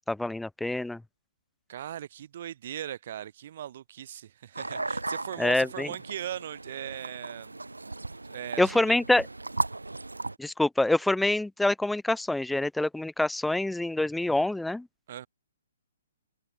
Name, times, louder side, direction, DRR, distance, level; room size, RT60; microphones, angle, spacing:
voice 1, 0.1-1.0 5.4-5.9 8.6-9.3 10.4-14.9, left 2 dB, 5° left, 0.3 m, -26 dB
voice 2, 1.7-7.6 8.3-9.0 15.1-15.3, right 10 dB, 45° right, 1.6 m, -39 dB
sound 1, 4.5-10.3, right 2 dB, 80° right, 4.8 m, -36 dB
open air
figure-of-eight pair, 125°, 0 cm